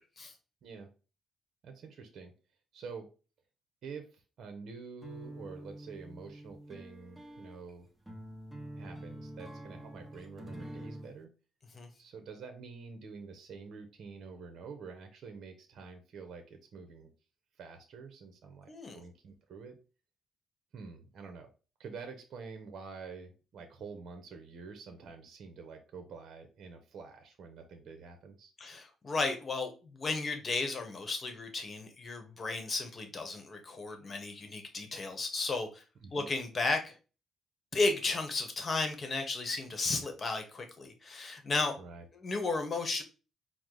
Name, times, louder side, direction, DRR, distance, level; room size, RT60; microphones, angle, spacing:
voice 1, 1.6-2.3 2.7-3.1 3.8-7.9 8.8-11.3 12.0-17.1 17.6-19.8 20.7-21.5 21.8-28.5 36.0-36.3 41.8-42.1, right 5 dB, 65° right, 0.7 m, -47 dB
sound 1, 5.0-11.1, right 1 dB, 10° right, 1.0 m, -46 dB
voice 2, 18.7-19.0 28.6-35.8 36.1-37.0 37.7-41.7 42.1-43.0, left 3 dB, 40° left, 1.0 m, -34 dB
4.6 x 2.0 x 3.7 m
cardioid pair, 90°, 0 cm